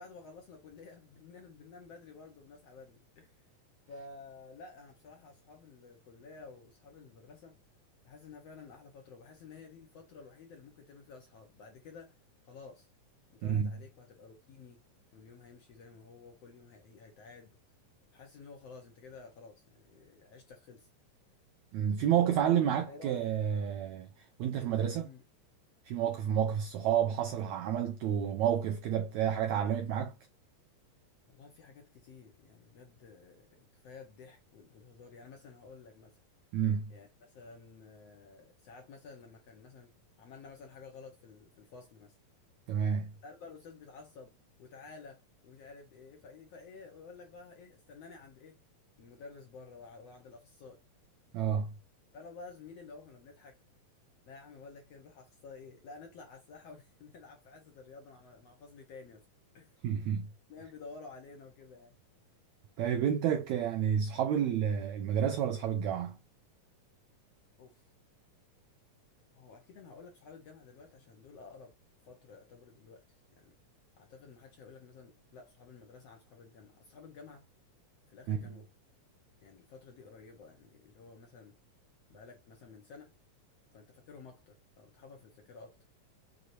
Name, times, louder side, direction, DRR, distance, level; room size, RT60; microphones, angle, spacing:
voice 1, 0.0-3.5 3.9-7.6 8.0-12.2 12.4-12.9 13.3-14.8 15.1-17.6 18.1-20.9 22.9-23.2 25.0-25.2 31.3-36.2 36.9-42.2 43.2-44.3 44.6-48.6 49.0-50.8 52.1-53.6 54.2-59.3 59.5-59.8 60.5-61.9 67.6-67.9 69.3-71.7 72.0-73.6 74.0-77.5 78.1-78.7 79.4-81.5 82.1-83.1 83.7-85.8, left 4 dB, 65° left, 1.6 m, -52 dB
voice 2, 21.7-25.1 25.8-30.1 36.5-36.9 42.7-43.1 51.3-51.7 59.8-60.3 62.8-66.2 78.3-78.4, right 9 dB, 85° right, 1.6 m, -30 dB
6.4 x 2.9 x 2.7 m
omnidirectional pair, 4.0 m